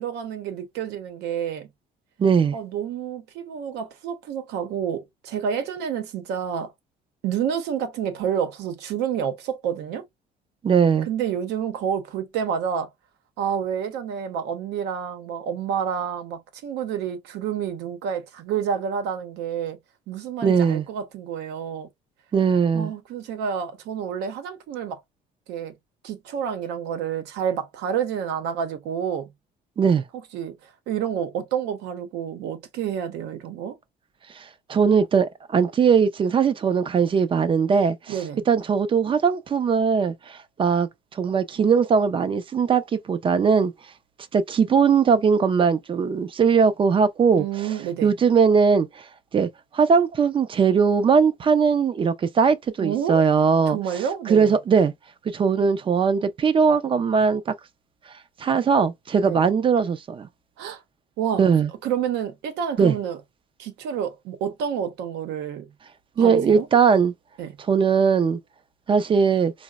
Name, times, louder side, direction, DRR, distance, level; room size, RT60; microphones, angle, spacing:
voice 1, 0.0-1.7 2.5-6.7 7.2-10.0 11.1-12.9 13.4-19.8 20.1-21.9 22.7-25.0 25.5-25.7 26.0-29.3 30.1-33.8 38.1-38.4 47.4-48.1 52.8-53.3 53.7-54.5 59.2-59.4 60.6-60.8 61.2-61.4 61.8-63.2 63.6-65.7 66.2-66.7 67.4-67.6, right 8 dB, 85° right, 0.7 m, -29 dB
voice 2, 2.2-2.6 10.6-11.1 20.4-20.8 22.3-22.9 29.8-30.0 34.4-38.1 38.5-43.7 44.3-47.5 48.0-48.9 49.3-53.8 54.3-54.9 55.3-57.5 58.4-60.3 61.4-61.7 62.8-62.9 66.2-67.1 67.7-68.4 68.9-69.5, right 6 dB, 30° right, 0.4 m, -20 dB
3.8 x 2.0 x 2.2 m
cardioid pair, 110°, 17 cm